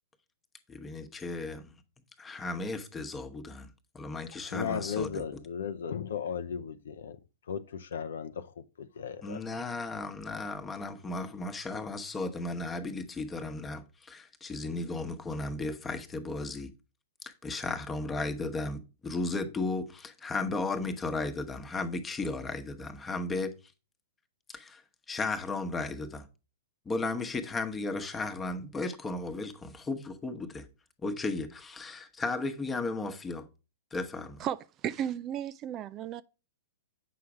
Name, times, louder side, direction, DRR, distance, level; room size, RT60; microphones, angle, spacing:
voice 1, 0.7-1.8 2.2-3.7 3.9-5.2 9.2-16.7 17.2-23.5 24.5-24.8 25.1-26.3 26.9-30.7 31.0-33.5 33.9-34.5, left 3 dB, 15° left, 1.1 m, -35 dB
voice 2, 4.5-7.2 7.5-9.6, left 7 dB, 65° left, 0.6 m, -36 dB
voice 3, 34.4-36.2, right 10 dB, 30° right, 0.4 m, -34 dB
8.3 x 5.9 x 4.9 m
figure-of-eight pair, 110°, 0 cm